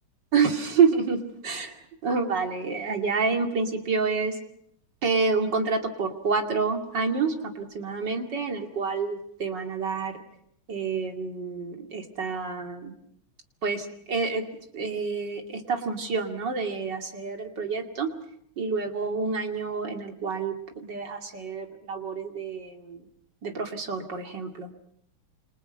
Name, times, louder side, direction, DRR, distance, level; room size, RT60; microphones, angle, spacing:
voice 1, 0.3-4.4 5.0-10.2 10.7-12.9 13.6-14.4 14.7-18.1 18.6-23.1 23.4-24.7, right 5 dB, 60° right, 3 dB, 3.1 m, -28 dB
29.0 x 26.0 x 5.6 m, 0.70 s
omnidirectional pair, 2.2 m